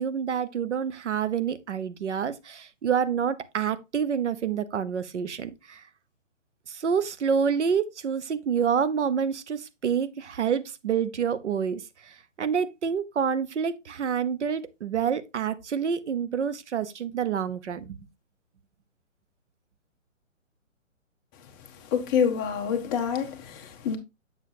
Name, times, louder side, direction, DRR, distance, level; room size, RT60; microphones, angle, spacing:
voice 1, 0.0-5.8 6.7-18.0, right 7 dB, 65° right, 0.8 m, -28 dB
voice 2, 21.9-24.0, left 7 dB, 15° left, 0.7 m, -26 dB
7.2 x 6.6 x 2.6 m
figure-of-eight pair, 135°, 39 cm